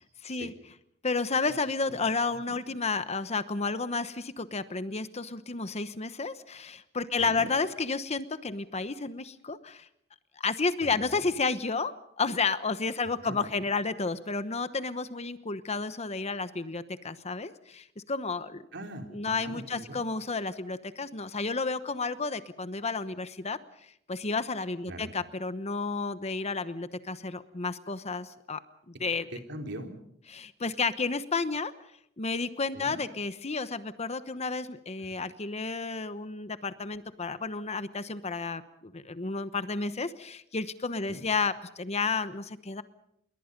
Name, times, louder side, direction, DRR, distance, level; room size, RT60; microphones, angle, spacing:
voice 1, 0.2-0.5 1.0-9.9 10.4-18.6 19.1-23.6 24.1-28.6 28.9-29.3 30.3-31.7 32.2-42.8, left 4 dB, 35° left, 12 dB, 1.0 m, -31 dB
voice 2, 7.2-7.5 10.8-11.2 13.2-13.4 18.7-20.0 24.9-25.1 29.3-29.9 32.7-33.0 41.1-41.2, right 1 dB, 65° right, 4 dB, 3.6 m, -41 dB
28.0 x 22.5 x 5.3 m, 0.70 s
head